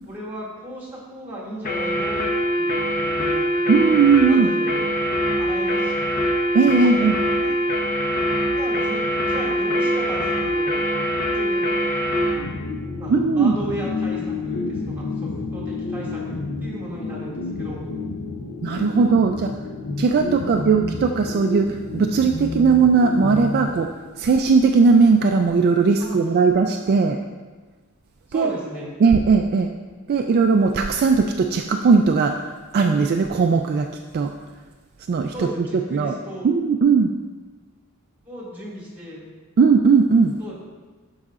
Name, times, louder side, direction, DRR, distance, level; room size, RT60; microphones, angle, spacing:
voice 1, 0.1-2.3 2.6-3.5 4.2-4.8 5.4-6.1 6.7-7.1 7.4-7.5 8.6-10.8 11.3-11.9 12.2-12.5 13.0-17.8 19.5-19.6 26.0-26.2 28.3-28.9 35.3-36.5 38.3-39.2 40.4-40.5, equal, 10° right, -6 dB, 2.1 m, -35 dB
sound 1, 1.7-12.4, equal, 40° left, 0.8 m, -23 dB
voice 2, 3.7-4.5 6.5-7.2 13.1-13.5 18.6-19.5 20.0-23.9 24.2-27.2 28.3-28.5 29.0-29.7 30.1-32.3 32.7-33.9 34.1-34.3 35.1-35.5 35.9-36.2 36.4-37.1 39.6-40.3, right 5 dB, 45° right, 4 dB, 0.3 m, -18 dB
sound 2, 12.4-24.3, left 3 dB, 75° left, 0.6 m, -30 dB
11.5 x 4.8 x 2.4 m, 1.3 s
head